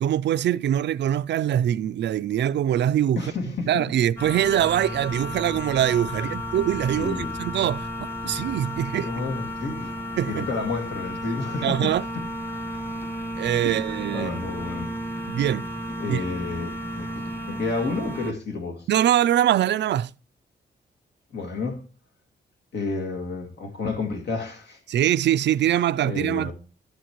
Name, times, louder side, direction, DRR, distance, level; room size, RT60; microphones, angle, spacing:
voice 1, 0.0-3.2 3.7-7.9 8.2-9.1 10.2-10.4 11.6-12.0 13.4-14.4 15.3-15.7 16.1-16.2 18.9-20.1 24.9-26.5, right 11 dB, 80° right, 0.4 m, -23 dB
voice 2, 3.2-3.9 6.2-6.3 7.0-7.3 9.0-9.9 10.3-12.0 13.6-14.9 16.0-18.9 21.3-21.8 22.7-24.8 26.0-26.5, left 3 dB, 75° left, 2.1 m, -31 dB
sound 1, 4.2-18.3, equal, 10° left, 1.2 m, -33 dB
12.5 x 7.3 x 3.0 m
cardioid pair, 95°, 18 cm